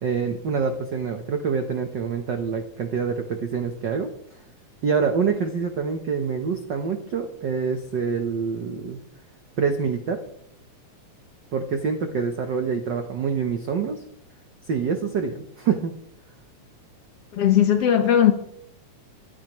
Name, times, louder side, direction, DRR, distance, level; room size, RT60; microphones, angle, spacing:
voice 1, 0.0-4.1 4.8-9.0 9.6-10.2 11.5-14.0 14.7-16.0, right 6 dB, 65° right, 1.1 m, -26 dB
voice 2, 17.3-18.3, left 10 dB, 65° left, 1.8 m, -18 dB
24.5 x 9.5 x 3.1 m
omnidirectional pair, 3.4 m